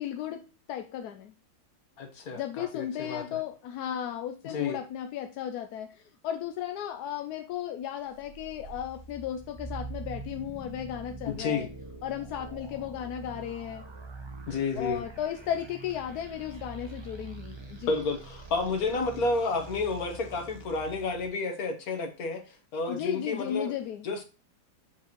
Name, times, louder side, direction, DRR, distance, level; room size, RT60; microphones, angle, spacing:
voice 1, 0.0-1.3 2.3-11.7 12.0-13.9 14.8-17.9 22.9-24.1, left 10 dB, 70° left, 6 dB, 1.0 m, -35 dB
voice 2, 2.0-3.4 4.4-4.8 11.3-11.7 14.5-15.0 17.9-22.4 22.7-23.7 24.0-24.2, left 3 dB, 55° left, 5 dB, 1.6 m, -30 dB
sound 1, 8.0-21.3, right 3 dB, 30° right, 0.4 m, -44 dB
7.6 x 4.6 x 3.0 m, 0.33 s
omnidirectional pair, 2.0 m